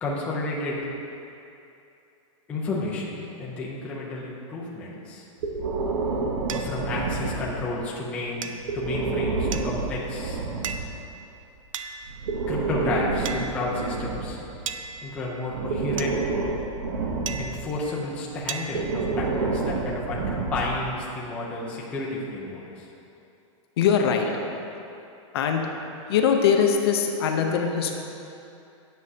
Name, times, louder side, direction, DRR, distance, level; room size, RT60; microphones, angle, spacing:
voice 1, 0.0-0.8 2.5-5.3 6.5-10.4 12.5-14.4 15.0-16.2 17.4-22.8, left 2 dB, 10° left, -5 dB, 0.5 m, -31 dB
Breathing, 5.4-7.8 8.6-10.9 12.0-14.9 15.5-17.7 18.7-21.0, right 3 dB, 65° right, 0.8 m, -29 dB
sound 1, 6.5-6.7 8.4-8.8 9.5-10.0 10.6-11.1 11.7-12.3 13.3-13.9 14.7-15.4 16.0-16.5 17.3-17.9 18.5-19.0, right 6 dB, 90° right, 0.5 m, -37 dB
voice 2, 23.8-24.3 25.3-25.6 26.1-28.0, left 7 dB, 50° left, 3 dB, 0.6 m, -22 dB
9.5 x 6.1 x 2.7 m, 2.7 s
supercardioid pair, 175°, 16 cm